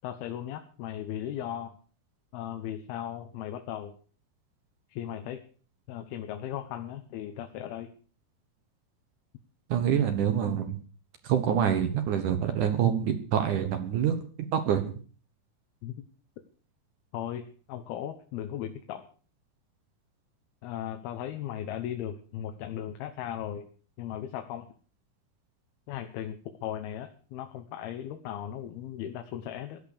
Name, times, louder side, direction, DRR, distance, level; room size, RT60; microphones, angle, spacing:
voice 1, 0.0-1.8 2.3-4.0 4.9-5.4 5.9-7.9 15.8-16.0 17.1-19.1 20.6-23.7 24.0-24.7 25.9-29.8, left 10 dB, 80° left, 6 dB, 3.0 m, -37 dB
voice 2, 9.7-10.8 11.2-14.2 14.5-15.0, right 9 dB, 65° right, 8 dB, 2.5 m, -26 dB
17.0 x 11.5 x 6.8 m, 0.41 s
omnidirectional pair, 4.3 m